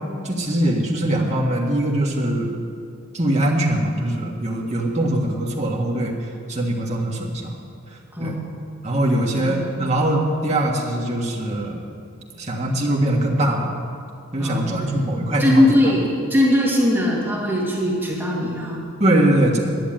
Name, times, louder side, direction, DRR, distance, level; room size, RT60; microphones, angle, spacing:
voice 1, 0.2-2.5 3.1-6.1 6.5-7.6 8.2-8.4 8.8-11.8 12.4-13.7 14.3-15.7 19.0-19.6, right 1 dB, 30° right, -1 dB, 1.5 m, -22 dB
voice 2, 8.1-8.5 9.4-9.7 14.4-15.0 15.4-18.8, left 1 dB, 10° right, -6 dB, 2.1 m, -20 dB
11.0 x 7.2 x 9.0 m, 2.4 s
head